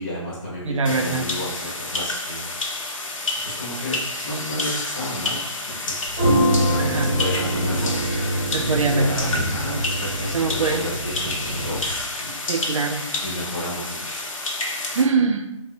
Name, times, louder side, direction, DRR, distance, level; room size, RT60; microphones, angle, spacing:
voice 1, 0.0-2.9 3.4-6.4 6.6-8.0 8.7-12.3 13.2-14.2, left 1 dB, 15° left, -8 dB, 0.6 m, -32 dB
voice 2, 0.7-1.3 6.8-7.1 8.5-9.3 10.3-10.8 12.5-13.0 14.9-15.5, right 4 dB, 75° right, 5 dB, 0.4 m, -22 dB
sound 1, 0.9-15.0, left 2 dB, 85° left, 0.7 m, -29 dB
sound 2, 6.1-12.0, equal, 20° right, 0.6 m, -24 dB
3.2 x 2.0 x 2.6 m, 0.95 s
hypercardioid pair, 170°, 16 cm